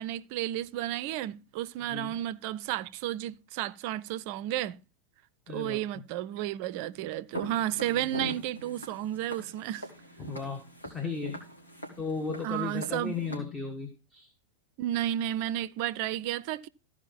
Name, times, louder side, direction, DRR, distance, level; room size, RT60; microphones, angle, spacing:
voice 1, 0.0-4.8 5.5-9.9 12.4-13.1 14.8-16.7, right 13 dB, 45° right, 0.5 m, -32 dB
voice 2, 5.5-5.8 10.2-11.4 12.0-14.3, left 5 dB, 15° left, 1.5 m, -35 dB
Walk footsteps, 7.3-13.4, equal, 80° left, 2.5 m, -42 dB
14.0 x 4.9 x 5.7 m
figure-of-eight pair, 90°, 0 cm